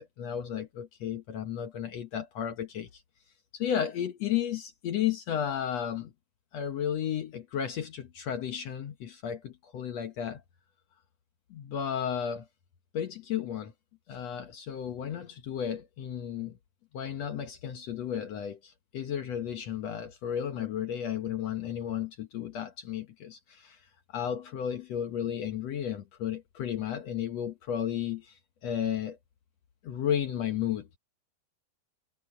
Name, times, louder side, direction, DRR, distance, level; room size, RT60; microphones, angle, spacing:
voice 1, 0.0-3.0 3.5-6.1 6.5-10.4 11.5-12.5 12.9-13.7 14.1-16.6 16.9-23.8 24.1-29.2 29.8-30.9, left 9 dB, 65° left, 1.7 m, -33 dB
omnidirectional pair, 4.3 m